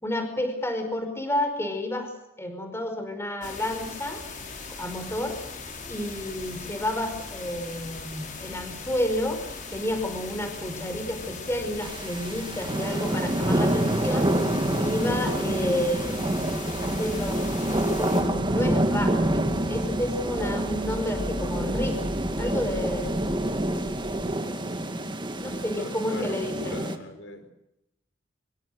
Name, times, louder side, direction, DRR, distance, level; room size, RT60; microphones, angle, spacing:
voice 1, 0.0-2.1 2.4-4.2 4.8-5.4 5.9-9.4 9.7-22.0 22.4-23.2 24.1-24.9 25.4-26.8, left 1 dB, 15° left, 6 dB, 5.0 m, -31 dB
sound 1, 3.4-18.2, left 4 dB, 45° left, 5.5 m, -39 dB
sound 2, 9.5-24.4, equal, 80° right, 1.8 m, -41 dB
sound 3, 11.8-27.0, right 1 dB, 25° right, 2.3 m, -27 dB
voice 2, 25.5-27.5, left 1 dB, 70° left, 8 dB, 4.7 m, -40 dB
25.5 x 24.0 x 6.6 m, 0.89 s
head